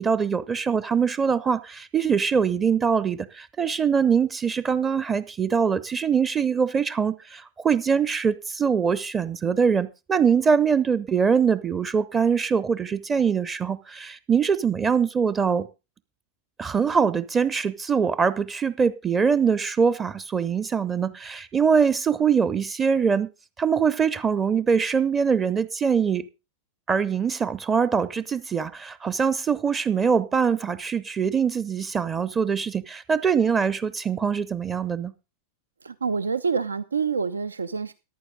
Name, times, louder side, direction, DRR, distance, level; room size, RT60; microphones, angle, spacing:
voice 1, 0.0-15.7 16.6-23.3 23.6-26.3 26.9-35.1, right 6 dB, 20° right, 0.7 m, -23 dB
voice 2, 35.8-37.9, right 5 dB, 75° right, 0.6 m, -27 dB
14.0 x 11.0 x 3.9 m
figure-of-eight pair, 90°, 0 cm